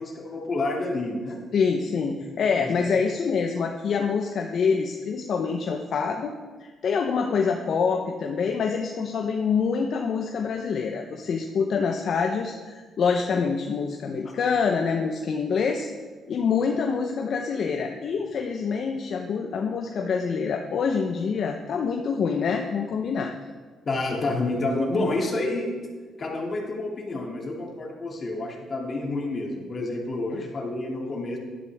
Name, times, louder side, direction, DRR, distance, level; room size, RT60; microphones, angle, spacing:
voice 1, 0.0-1.4 2.6-2.7 23.9-25.7 26.2-31.4, left 2 dB, 40° left, -1 dB, 2.6 m, -29 dB
voice 2, 1.5-6.3 6.6-15.9 16.3-23.3 30.3-30.4, left 5 dB, 60° left, 3 dB, 0.8 m, -26 dB
12.0 x 11.5 x 3.5 m, 1.4 s
cardioid pair, 90°, 0 cm